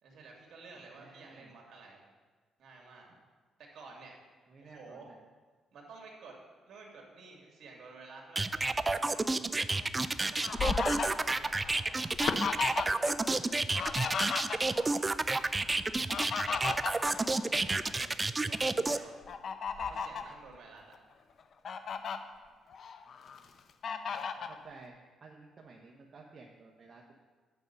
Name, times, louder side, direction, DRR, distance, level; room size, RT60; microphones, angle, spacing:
voice 1, 0.0-2.0 2.6-3.1 3.6-4.1 4.6-5.1 5.7-6.4 6.7-9.4 10.3-12.1 12.9-13.3 13.9-14.4 14.7-15.3 15.5-15.7 17.0-17.3 17.6-19.2 19.8-20.9, right 3 dB, 65° right, 0 dB, 2.3 m, -52 dB
voice 2, 0.9-1.5 4.5-5.2 24.5-25.0 25.2-27.1, right 4 dB, 45° right, -1 dB, 1.0 m, -53 dB
sound 1, 8.4-19.0, right 3 dB, 20° right, 0.4 m, -30 dB
Fowl, 9.8-13.1 13.4-14.9 15.9-18.0 18.4-18.6 19.3-20.3 20.9-21.0 21.4-22.2 22.7-23.4 23.8-24.6, left 6 dB, 55° left, 0.6 m, -35 dB
9.2 x 5.4 x 6.8 m, 1.4 s
cardioid pair, 90°, 0 cm